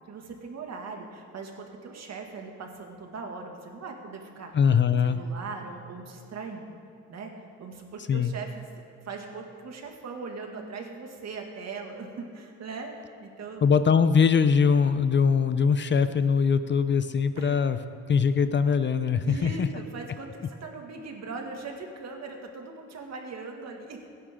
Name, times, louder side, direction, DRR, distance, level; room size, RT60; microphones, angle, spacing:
voice 1, 0.1-4.5 5.0-6.8 7.1-7.3 7.6-13.7 17.4-17.6 19.2-24.0, right 4 dB, 60° right, 2 dB, 2.2 m, -40 dB
voice 2, 4.5-5.2 8.1-8.3 13.6-17.8 18.1-19.7, left 6 dB, 40° left, 11 dB, 0.7 m, -22 dB
23.5 x 10.0 x 3.7 m, 2.4 s
cardioid pair, 90°, 30 cm